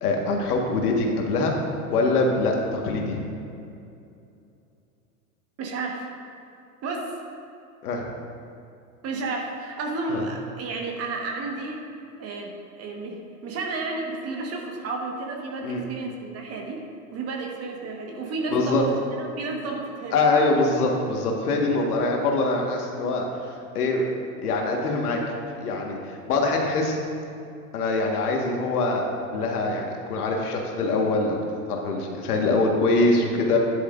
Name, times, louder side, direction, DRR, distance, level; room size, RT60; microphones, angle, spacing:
voice 1, 0.0-1.5 1.9-3.2 7.8-8.1 10.1-10.3 15.6-15.8 18.5-18.8 20.1-24.0 24.4-25.2 25.6-27.0 27.7-29.1 29.3-31.4 31.7-33.6, left 3 dB, 70° left, 0 dB, 1.8 m, -24 dB
voice 2, 5.6-6.1 6.8-7.1 9.0-11.8 12.2-16.8 17.1-20.2, right 3 dB, 30° right, 1 dB, 1.5 m, -32 dB
11.5 x 10.5 x 2.6 m, 2.5 s
hypercardioid pair, 105°, 47 cm